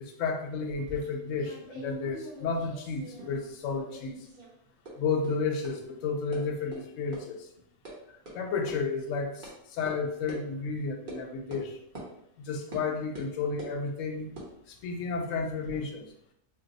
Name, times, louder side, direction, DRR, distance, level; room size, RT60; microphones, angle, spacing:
voice 1, 0.0-4.2 5.0-7.5 8.3-11.8 12.4-14.3 14.7-16.1, left 4 dB, 70° left, 4 dB, 0.9 m, -32 dB
sound 1, 0.7-3.5 3.7-4.5 4.8-4.9 5.2-5.3 5.6-5.7 6.3-6.4 6.7-6.8 7.1-7.2 7.5-7.9 8.3-8.4 8.7-8.8 9.4-9.5 9.9-10.0 10.3-10.4 11.1-11.2 11.5-11.6 11.9-12.1 12.7-12.8 13.1-13.8 14.3-15.8, right 1 dB, 40° right, 1.0 m, -44 dB
2.8 x 2.2 x 3.9 m, 0.75 s
omnidirectional pair, 1.4 m